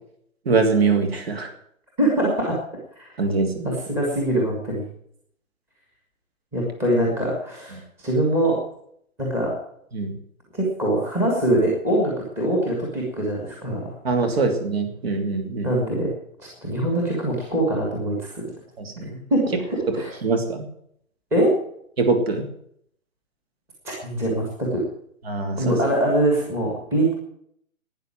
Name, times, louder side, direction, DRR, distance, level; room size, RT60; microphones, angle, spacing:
voice 1, 0.4-1.5 3.2-3.7 7.7-7.8 9.9-10.1 14.0-15.7 18.8-19.2 20.2-20.6 22.0-22.4 25.3-25.8, right 4 dB, 45° right, 6 dB, 2.9 m, -23 dB
voice 2, 2.0-2.6 3.0-3.1 3.9-4.8 6.5-8.6 9.2-9.5 10.5-13.9 15.6-16.1 16.6-18.4 19.3-19.4 19.7-20.1 21.3-21.5 23.8-24.8 25.6-27.1, right 1 dB, 5° right, -2 dB, 1.7 m, -23 dB
12.0 x 9.4 x 8.9 m, 0.69 s
hypercardioid pair, 175°, 42 cm